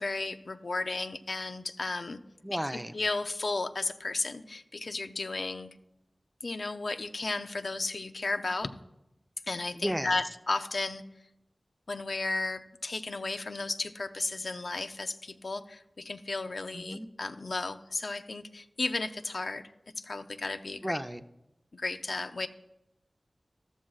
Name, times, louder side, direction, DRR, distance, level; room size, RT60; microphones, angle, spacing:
voice 1, 0.0-2.2 2.5-2.6 2.9-5.7 6.4-8.7 9.5-11.0 11.9-19.6 20.0-21.0 21.7-22.5, left 3 dB, 80° left, 7 dB, 0.5 m, -34 dB
voice 2, 2.4-2.9 9.7-10.1 16.7-17.1 20.8-21.2, equal, 10° right, 8 dB, 0.6 m, -33 dB
13.5 x 12.5 x 2.4 m, 0.91 s
wide cardioid pair, 40°, 0 cm